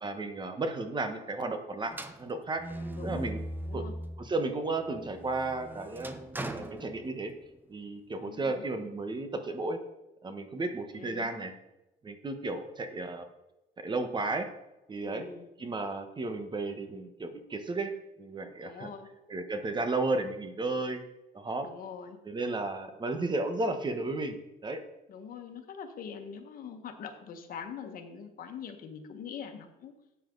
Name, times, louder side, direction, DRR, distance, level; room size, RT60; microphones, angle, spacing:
voice 1, 0.0-2.6 3.0-3.4 3.7-3.8 4.2-7.3 7.7-9.8 10.2-11.5 12.0-13.2 13.8-14.5 14.9-15.2 15.6-17.9 18.2-18.9 19.3-21.0 21.3-21.7 22.2-24.4 24.6-24.8, right 2 dB, 25° right, 7 dB, 1.3 m, -33 dB
sound 1, 1.9-4.3 4.8-7.6, right 1 dB, 10° right, 0.9 m, -40 dB
voice 2, 2.7-3.3 3.6-3.9 8.2-8.6 10.9-11.3 15.0-15.6 18.6-19.1 21.6-22.2 25.1-30.0, left 6 dB, 55° left, 5 dB, 1.6 m, -43 dB
12.5 x 8.5 x 4.0 m, 0.94 s
cardioid pair, 110°, 17 cm